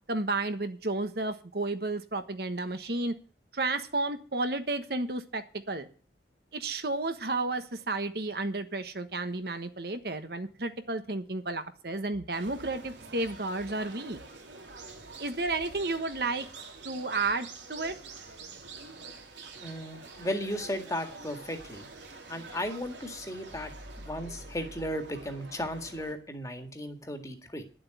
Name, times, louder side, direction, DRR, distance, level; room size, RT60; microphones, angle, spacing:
voice 1, 0.1-3.1 3.5-5.9 6.5-14.2 15.2-16.5 16.8-18.0, right 2 dB, 55° right, 9 dB, 1.3 m, -32 dB
sound 1, 12.3-26.1, right 3 dB, 80° right, 3.1 m, -47 dB
voice 2, 19.6-21.9 22.3-23.7 24.0-27.6, equal, 20° left, 5 dB, 1.8 m, -35 dB
11.5 x 7.7 x 9.4 m, 0.38 s
head